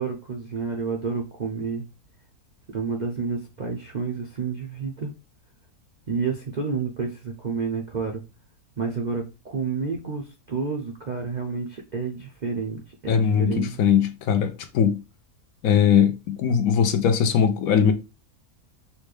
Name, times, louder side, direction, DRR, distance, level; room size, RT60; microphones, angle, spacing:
voice 1, 0.0-1.8 2.7-5.1 6.1-8.2 8.8-13.8, right 5 dB, 60° right, 0.4 m, -30 dB
voice 2, 13.1-15.0 15.6-17.9, left 8 dB, 75° left, 1.0 m, -20 dB
4.2 x 2.2 x 3.2 m
omnidirectional pair, 1.6 m